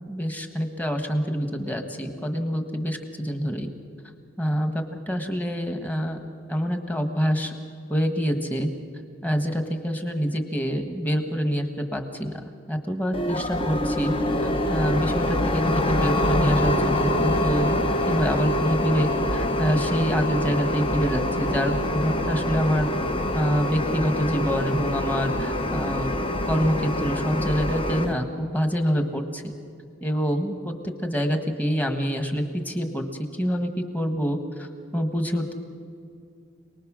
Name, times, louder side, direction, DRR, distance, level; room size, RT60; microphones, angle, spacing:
voice 1, 0.1-3.7 4.4-6.2 6.5-7.5 7.9-8.7 9.2-12.3 12.7-14.1 14.4-22.9 23.3-26.1 26.4-29.5 30.0-33.0 33.3-34.7 34.9-35.5, equal, 10° left, 5 dB, 1.4 m, -26 dB
sound 1, 13.1-28.1, left 1 dB, 25° left, 0.9 m, -25 dB
28.0 x 19.5 x 6.3 m, 2.4 s
head